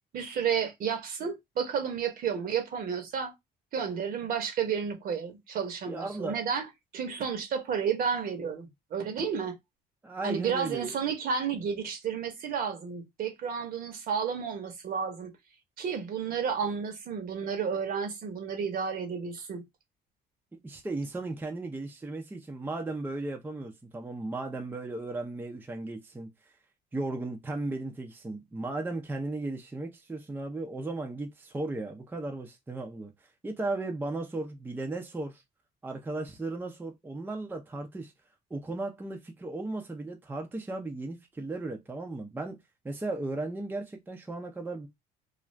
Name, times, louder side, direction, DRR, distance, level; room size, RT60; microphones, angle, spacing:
voice 1, 0.1-3.3 3.7-6.6 6.9-9.6 10.2-15.3 15.8-19.6, right 6 dB, 55° right, 1.0 m, -31 dB
voice 2, 5.9-6.4 10.0-10.9 20.6-26.3 26.9-33.1 33.4-35.4 35.8-38.1 38.5-42.6 42.8-44.9, right 2 dB, 10° right, 0.5 m, -36 dB
2.5 x 2.4 x 3.1 m
cardioid pair, 110°, 17 cm